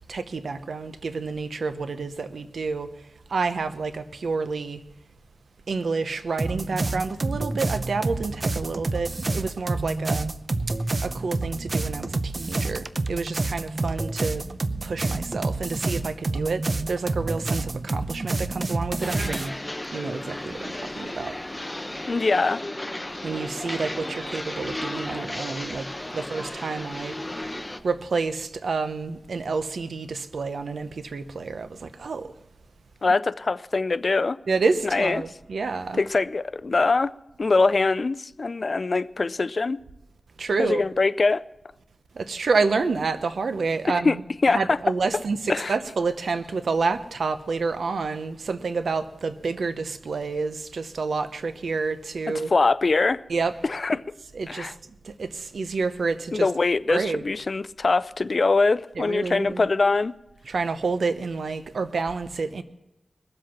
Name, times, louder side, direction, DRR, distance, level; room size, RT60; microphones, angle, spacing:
voice 1, 0.1-2.9 3.3-4.8 5.7-10.3 11.0-14.4 14.8-19.5 19.9-21.4 23.2-25.9 26.1-27.2 27.8-32.3 34.5-36.0 40.4-40.8 42.1-44.2 44.5-52.5 53.3-53.5 54.3-54.7 55.0-56.5 56.9-57.2 59.0-59.7 60.5-62.6, right 4 dB, 85° right, 0.8 m, -29 dB
sound 1, 6.4-19.5, right 2 dB, 45° right, 0.6 m, -28 dB
sound 2, 19.0-27.8, left 1 dB, 15° left, 0.9 m, -34 dB
voice 2, 22.1-22.6 33.0-34.4 34.9-35.2 36.0-37.1 37.4-39.8 40.6-41.4 43.9-44.8 45.5-45.7 52.5-53.2 53.6-54.0 54.5-54.7 56.3-60.1, left 3 dB, 55° left, 0.4 m, -23 dB
21.5 x 7.8 x 5.9 m
wide cardioid pair, 75°, 0 cm